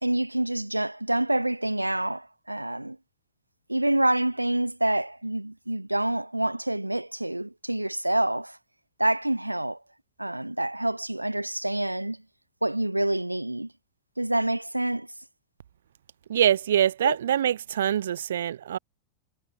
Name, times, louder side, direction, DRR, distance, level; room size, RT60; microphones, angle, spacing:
voice 1, 0.0-3.0 3.7-8.6 9.0-9.8 10.2-12.2 12.6-13.7 14.2-15.1 17.0-17.2, right 1 dB, 85° right, 2.4 m, -27 dB
voice 2, 16.3-18.8, right 10 dB, 65° right, 3.6 m, -24 dB
figure-of-eight pair, 90°, 0 cm